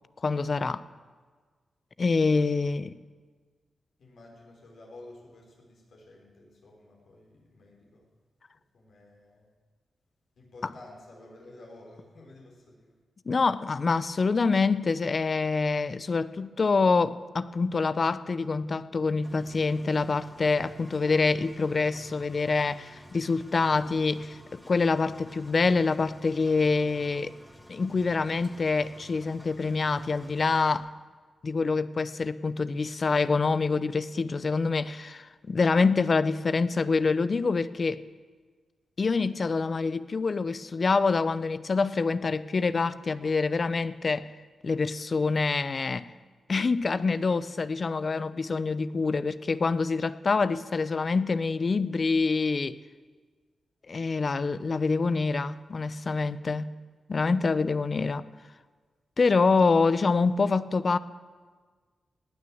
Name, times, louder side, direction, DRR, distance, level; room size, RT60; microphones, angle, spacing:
voice 1, 0.2-0.8 2.0-2.9 10.6-10.7 13.3-27.3 27.7-30.9 31.4-38.0 39.0-44.3 44.6-46.1 46.5-52.8 53.9-56.7 57.1-58.3 59.2-61.0, left 4 dB, 50° left, 0.7 m, -26 dB
voice 2, 2.3-2.7 4.0-8.1 8.7-9.5 10.4-13.0, left 2 dB, 75° left, 5.2 m, -51 dB
Engine, 19.2-30.8, left 1 dB, 10° left, 2.2 m, -52 dB
18.5 x 9.7 x 7.9 m
cardioid pair, 70°, 0 cm